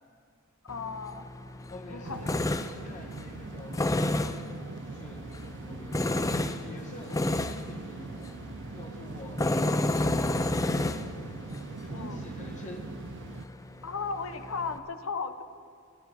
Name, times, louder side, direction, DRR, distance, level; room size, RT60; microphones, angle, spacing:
voice 1, 0.6-1.3 1.9-2.4 11.9-12.3 13.8-15.4, left 4 dB, 75° left, 9 dB, 1.0 m, -35 dB
Tools, 0.7-14.8, left 2 dB, 15° left, 0.5 m, -32 dB
voice 2, 1.6-2.3 2.8-4.4 4.8-5.3 5.6-6.3 6.6-8.4 8.7-9.4 11.8-12.9, left 1 dB, 35° left, 1 dB, 1.3 m, -46 dB
sound 1, 2.0-13.5, right 4 dB, 55° right, 0.5 m, -42 dB
24.5 x 12.0 x 4.2 m, 2.2 s
head